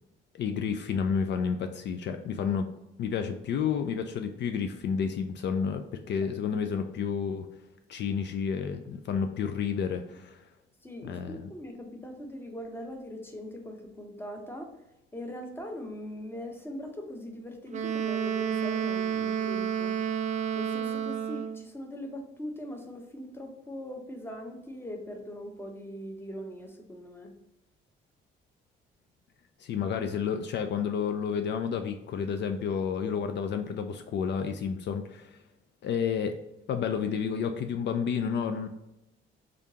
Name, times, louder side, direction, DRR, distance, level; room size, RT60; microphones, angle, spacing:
voice 1, 0.3-2.7 3.0-7.5 7.9-10.4 11.0-11.5 29.6-35.4 35.8-36.4 36.7-38.7, left 6 dB, 60° left, 7 dB, 0.4 m, -30 dB
voice 2, 10.8-14.7 15.1-20.0 20.5-27.3, equal, 10° left, 3 dB, 0.8 m, -41 dB
Wind instrument woodwind instrument, 17.7-21.6, right 8 dB, 40° right, 0.4 m, -30 dB
3.8 x 3.5 x 2.8 m, 0.93 s
cardioid pair, 90°, 20 cm